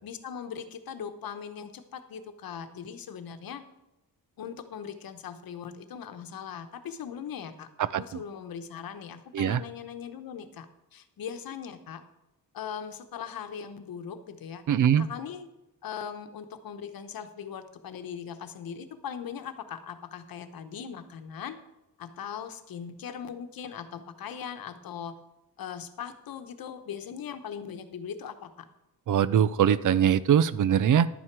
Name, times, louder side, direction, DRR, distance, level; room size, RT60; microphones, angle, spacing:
voice 1, 0.0-3.6 4.4-12.0 12.5-14.6 15.0-15.5 15.8-21.6 22.0-25.2 25.6-28.7, left 7 dB, 70° left, 8 dB, 1.1 m, -40 dB
voice 2, 7.8-8.2 9.3-9.6 14.7-15.1 29.1-31.1, right 9 dB, 55° right, 17 dB, 0.6 m, -22 dB
11.5 x 8.9 x 4.7 m, 0.94 s
wide cardioid pair, 145°, 37 cm